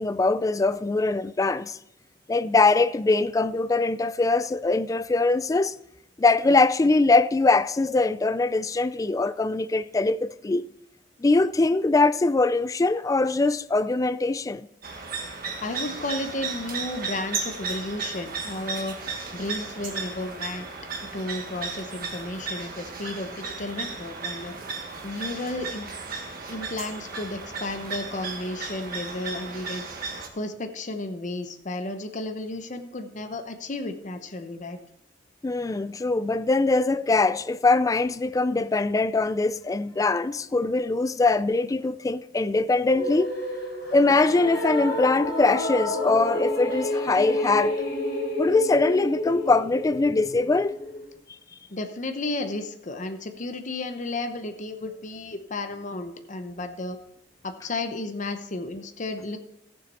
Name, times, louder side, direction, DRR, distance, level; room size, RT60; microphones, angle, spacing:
voice 1, 0.0-1.8 2.3-5.7 6.2-10.7 11.2-14.7 35.4-43.3 43.9-47.8 48.4-50.8, left 3 dB, 20° left, 0.3 m, -22 dB
sound 1, 14.8-30.3, right 4 dB, 55° right, 1.5 m, -35 dB
voice 2, 15.6-19.0 19.3-20.7 21.0-24.5 25.0-25.9 26.5-29.9 30.3-34.8 51.7-57.0 57.4-59.4, left 2 dB, 45° left, 0.8 m, -33 dB
sound 2, 42.9-51.1, left 1 dB, 60° left, 3.2 m, -29 dB
14.5 x 7.1 x 4.2 m
head